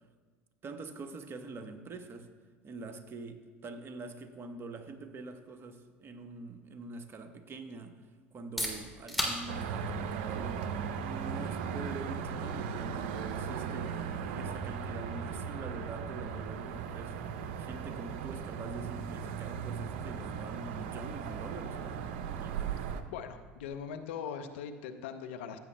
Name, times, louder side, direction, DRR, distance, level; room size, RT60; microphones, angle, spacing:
voice 1, 0.6-2.3 2.6-7.9 8.3-10.7 10.9-13.9 14.4-17.3 17.6-22.6, right 3 dB, 40° right, 6 dB, 1.0 m, -45 dB
sound 1, 8.3-23.9, equal, ahead, 2.6 m, -45 dB
sound 2, 9.5-23.0, right 6 dB, 70° right, 0.6 m, -37 dB
voice 2, 23.1-25.6, left 7 dB, 75° left, 8 dB, 0.7 m, -40 dB
15.0 x 8.2 x 2.2 m, 1.5 s
hypercardioid pair, 75°, 6 cm